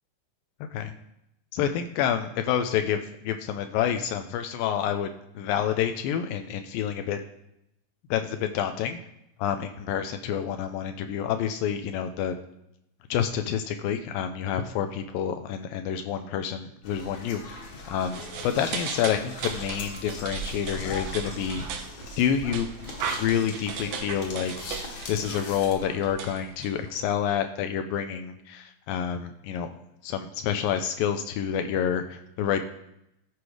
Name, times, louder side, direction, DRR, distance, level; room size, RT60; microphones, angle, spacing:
voice 1, 1.5-7.2 8.1-9.0 9.4-12.4 13.1-17.4 17.9-21.6 22.2-22.7 23.1-24.5 24.8-29.7 30.0-32.6, left 9 dB, 85° left, 7 dB, 2.3 m, -28 dB
sound 1, 16.8-25.7, left 3 dB, 60° left, 2.7 m, -40 dB
sound 2, 18.1-27.1, right 7 dB, 80° right, 2.7 m, -37 dB
13.0 x 4.8 x 4.8 m, 0.81 s
omnidirectional pair, 4.1 m